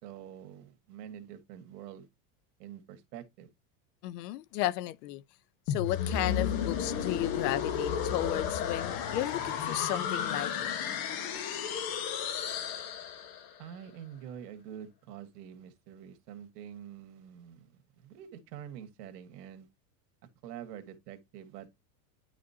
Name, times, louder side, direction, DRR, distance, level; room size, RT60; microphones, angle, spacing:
voice 1, 0.0-2.1 2.6-3.5 13.6-19.7 20.4-21.8, right 9 dB, 80° right, 1.6 m, -46 dB
voice 2, 4.0-5.2 5.7-10.7, left 15 dB, 80° left, 0.8 m, -34 dB
sound 1, 5.7-13.6, left 8 dB, 50° left, 1.3 m, -33 dB
10.0 x 5.0 x 2.7 m
supercardioid pair, 155°, 47 cm